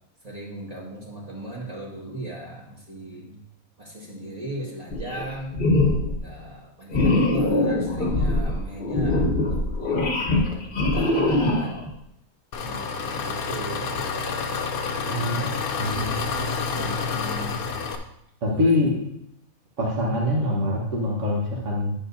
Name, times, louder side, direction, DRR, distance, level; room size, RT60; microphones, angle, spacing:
voice 1, 0.2-3.4 3.8-5.5 6.2-11.9 12.6-13.9 16.7-17.7 18.5-18.8 19.9-20.2, right 1 dB, 25° right, -5 dB, 1.9 m, -38 dB
sound 1, 4.9-5.3 5.5-6.2 6.9-11.9, left 2 dB, 40° left, 1.2 m, -22 dB
Engine, 12.5-18.0, left 4 dB, 85° left, 1.2 m, -28 dB
voice 2, 15.1-15.5 15.8-16.2 18.4-19.0 19.8-21.9, left 1 dB, 55° right, -2 dB, 1.6 m, -24 dB
10.0 x 7.2 x 2.7 m, 0.77 s
omnidirectional pair, 1.5 m